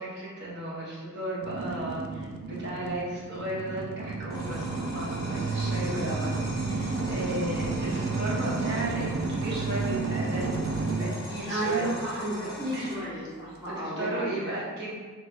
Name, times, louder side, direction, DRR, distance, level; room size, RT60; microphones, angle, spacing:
voice 1, 0.0-11.9 12.7-13.3 13.6-15.0, right 1 dB, 50° right, -7 dB, 1.2 m, -35 dB
sound 1, 1.4-12.4, right 3 dB, 70° right, 0.4 m, -32 dB
sound 2, 4.3-13.0, left 1 dB, 15° left, 0.8 m, -42 dB
voice 2, 11.5-14.5, right 1 dB, 15° right, -12 dB, 0.8 m, -32 dB
3.1 x 3.1 x 4.3 m, 1.4 s
head